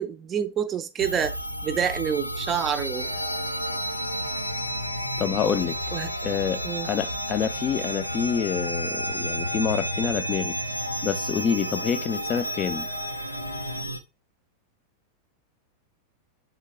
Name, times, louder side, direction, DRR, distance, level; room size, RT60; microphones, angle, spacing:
voice 1, 0.0-1.3 1.6-3.1 5.9-6.1 6.6-6.9, right 8 dB, 25° right, 0.5 m, -27 dB
sound 1, 1.0-14.0, equal, 85° right, 0.4 m, -31 dB
sound 2, 2.9-13.8, left 5 dB, 90° left, 0.6 m, -40 dB
voice 2, 5.2-5.8 6.2-10.6 11.0-12.9, left 8 dB, 30° left, 0.4 m, -27 dB
4.0 x 3.6 x 3.3 m
figure-of-eight pair, 90°, 0 cm